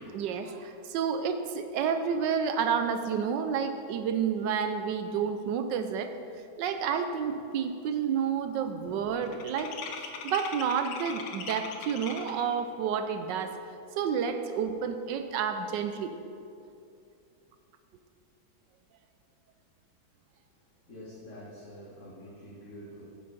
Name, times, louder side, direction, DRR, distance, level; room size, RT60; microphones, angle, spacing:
voice 1, 0.1-6.1 6.6-9.7 10.2-13.5 14.0-16.1, right 7 dB, 75° right, 8 dB, 1.1 m, -30 dB
sound 1, 6.9-7.0 7.3-7.7 7.9-12.5, left 5 dB, 90° left, 1.7 m, -41 dB
voice 2, 20.9-23.0, equal, 40° left, -9 dB, 2.1 m, -46 dB
8.8 x 7.8 x 5.1 m, 2.6 s
omnidirectional pair, 2.2 m